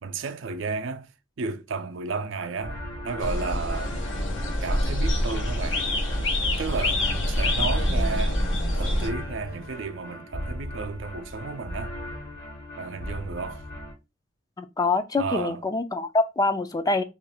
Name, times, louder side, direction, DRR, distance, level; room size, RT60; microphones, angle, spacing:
voice 1, 0.0-1.1 1.4-4.0 4.6-5.8 6.6-8.4 8.7-12.0 12.8-13.6 15.2-15.6, right 4 dB, 85° right, 0.5 m, -33 dB
sound 1, 2.6-13.9, left 1 dB, 50° left, 1.1 m, -37 dB
sound 2, 3.2-9.1, left 1 dB, 80° left, 0.9 m, -26 dB
voice 2, 14.6-17.0, left 3 dB, 20° left, 0.3 m, -25 dB
3.0 x 2.5 x 4.2 m
head